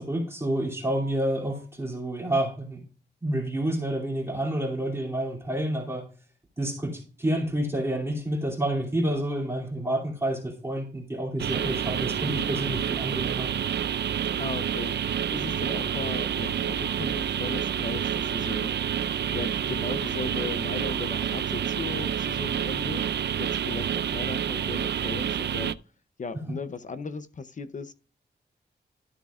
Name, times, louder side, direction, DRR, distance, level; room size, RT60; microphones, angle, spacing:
voice 1, 0.0-2.8 3.2-6.0 6.6-13.5, right 1 dB, 15° right, 2.7 m, -29 dB
sound 1, 11.4-25.7, right 8 dB, 70° right, 0.4 m, -28 dB
voice 2, 14.4-18.7 19.3-25.8 26.2-27.9, left 4 dB, 45° left, 0.6 m, -37 dB
12.5 x 6.9 x 2.4 m
wide cardioid pair, 145°, 18 cm